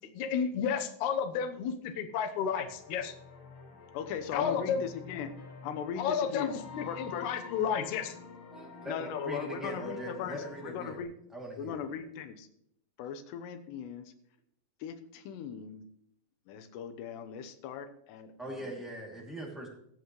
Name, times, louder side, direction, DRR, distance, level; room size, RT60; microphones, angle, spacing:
voice 1, 0.1-3.1 4.3-4.8 6.0-8.1, left 7 dB, 70° left, 6 dB, 1.9 m, -32 dB
sound 1, 2.6-11.0, left 4 dB, 55° left, 1.4 m, -48 dB
voice 2, 3.9-5.3 5.6-6.6 6.9-7.3 8.8-11.1 11.6-12.5 13.0-14.1 14.8-15.9 16.5-18.7, left 8 dB, 85° left, 9 dB, 3.1 m, -39 dB
voice 3, 8.5-11.0 11.3-11.8 18.4-19.7, right 1 dB, ahead, -2 dB, 1.5 m, -41 dB
21.5 x 8.2 x 3.2 m, 0.72 s
omnidirectional pair, 4.8 m